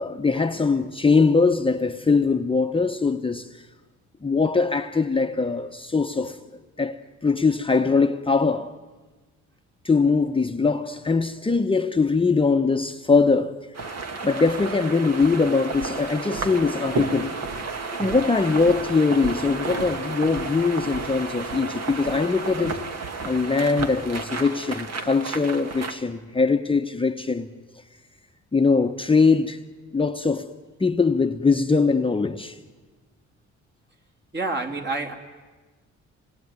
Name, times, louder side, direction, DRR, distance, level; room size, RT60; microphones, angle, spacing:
voice 1, 0.0-3.7 4.2-6.4 6.8-8.8 9.8-17.4 18.0-22.9 23.2-27.5 28.5-29.6 29.9-30.5 30.8-32.6, left 4 dB, 15° left, 0.9 m, -22 dB
sound 1, 13.7-26.0, right 4 dB, 55° right, 2.1 m, -32 dB
voice 2, 34.3-35.1, right 3 dB, 35° right, 3.1 m, -28 dB
27.0 x 20.0 x 9.6 m
cardioid pair, 90°, 30 cm